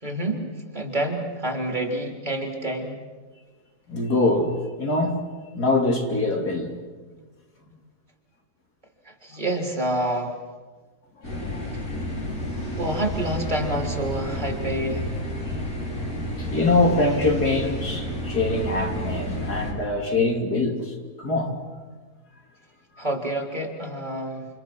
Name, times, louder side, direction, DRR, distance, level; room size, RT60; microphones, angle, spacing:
voice 1, 0.0-0.5 0.7-3.0 9.0-10.3 12.6-15.1 23.0-24.5, right 1 dB, 30° right, 1 dB, 3.8 m, -28 dB
voice 2, 3.9-5.2 5.5-6.7 7.1-7.2 7.7-7.8 11.4-11.8 12.1-12.7 15.5-15.6 16.4-21.6, left 2 dB, 90° left, 1 dB, 3.7 m, -24 dB
sound 1, 11.2-19.7, equal, 70° left, 5.5 m, -30 dB
29.0 x 27.5 x 6.2 m, 1.4 s
omnidirectional pair, 1.6 m